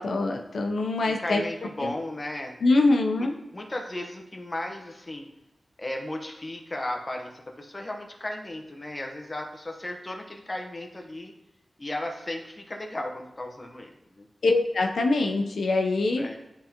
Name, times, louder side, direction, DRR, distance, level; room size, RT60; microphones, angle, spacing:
voice 1, 0.0-1.4 1.8-1.9 2.6-3.3 14.4-16.4, left 2 dB, 90° left, 2 dB, 0.7 m, -24 dB
voice 2, 1.0-2.6 3.2-5.3 5.8-11.3 11.8-14.3 16.2-16.4, left 1 dB, 25° left, 2 dB, 1.0 m, -35 dB
11.0 x 3.8 x 2.9 m, 0.90 s
wide cardioid pair, 100°, 0 cm